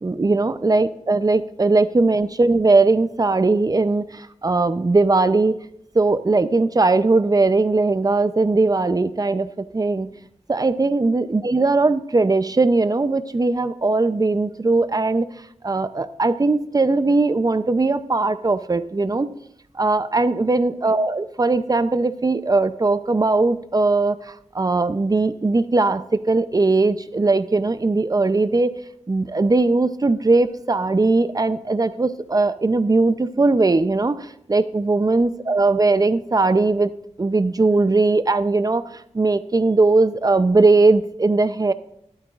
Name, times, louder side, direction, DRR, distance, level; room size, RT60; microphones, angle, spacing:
voice 1, 0.0-5.5 5.9-10.1 10.5-15.3 15.6-19.3 19.7-28.7 29.1-36.9 37.2-38.8 39.1-41.7, right 3 dB, 30° right, 12 dB, 0.6 m, -19 dB
24.0 x 8.8 x 2.5 m, 0.76 s
wide cardioid pair, 70°, 12 cm